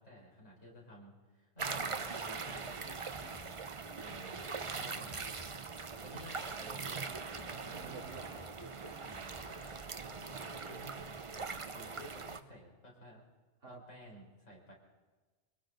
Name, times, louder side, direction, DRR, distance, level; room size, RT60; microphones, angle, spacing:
voice 1, 0.0-3.0 3.9-5.3 5.5-7.4 9.0-13.2 13.7-14.7, equal, 90° left, -2 dB, 5.0 m, -54 dB
sound 1, 1.6-12.4, right 4 dB, 35° right, 0.6 m, -42 dB
sound 2, 2.8-10.5, left 2 dB, 15° left, 1.8 m, -58 dB
voice 2, 7.5-8.9 13.6-13.8, right 3 dB, 80° right, -2 dB, 4.4 m, -50 dB
29.5 x 23.0 x 3.9 m, 1.3 s
omnidirectional pair, 1.3 m